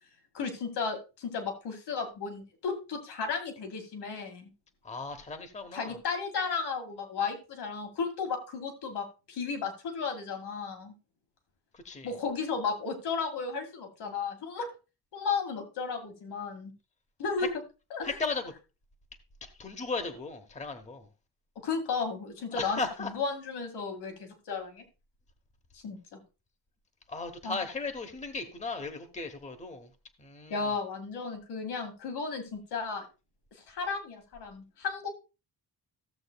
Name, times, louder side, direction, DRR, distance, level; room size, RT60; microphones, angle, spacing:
voice 1, 0.3-4.5 5.7-10.9 12.0-14.7 15.1-16.7 17.2-17.5 17.9-18.1 21.6-24.8 25.8-26.2 27.4-27.6 30.5-33.0 33.7-35.1, left 5 dB, 75° left, 5 dB, 2.1 m, -34 dB
voice 2, 4.8-6.0 11.7-12.1 17.4-17.5 18.0-18.5 19.4-21.1 22.5-23.1 27.1-29.9 30.2-30.7, left 3 dB, 15° left, 7 dB, 0.9 m, -36 dB
15.0 x 7.6 x 2.2 m, 0.30 s
wide cardioid pair, 180°, 40 cm